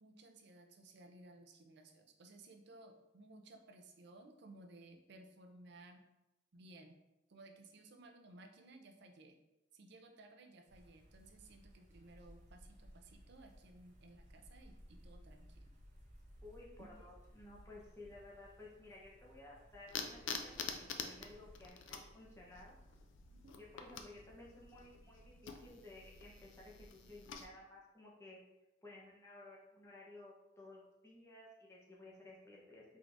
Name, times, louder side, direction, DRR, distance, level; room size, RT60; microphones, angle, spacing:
voice 1, 0.0-6.0 6.5-7.0 7.3-9.4 9.7-15.7 16.8-17.1 23.3-23.5, right 2 dB, 60° right, 4 dB, 0.5 m, -58 dB
sound 1, 10.7-21.7, equal, 40° right, 1.0 m, -60 dB
voice 2, 16.4-22.8 23.6-28.4 28.8-32.8, left 2 dB, 15° left, -4 dB, 0.9 m, -56 dB
sound 2, 19.8-27.5, left 6 dB, 80° left, 0.4 m, -48 dB
4.5 x 3.6 x 2.6 m, 0.96 s
head